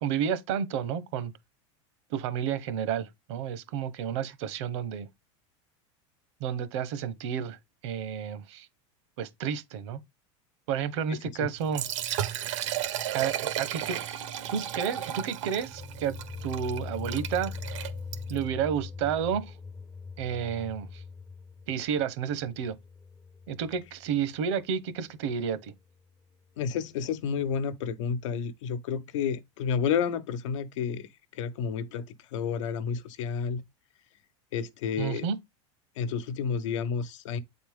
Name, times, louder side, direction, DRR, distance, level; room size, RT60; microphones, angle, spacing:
voice 1, 0.0-1.3 2.1-5.1 6.4-7.6 7.8-8.7 9.2-10.0 10.7-11.8 13.1-14.0 14.5-16.1 16.4-17.5 18.3-19.5 20.2-21.0 21.7-22.7 23.5-25.7 35.0-35.4, right 8 dB, 65° right, 1.2 m, -31 dB
Liquid, 11.6-18.5, right 11 dB, 80° right, 1.4 m, -34 dB
sound 1, 15.5-24.4, left 5 dB, 5° left, 0.6 m, -41 dB
voice 2, 26.6-33.6 34.5-35.3 36.0-37.4, left 7 dB, 80° left, 1.0 m, -31 dB
8.1 x 4.2 x 3.6 m
supercardioid pair, 155°, 16 cm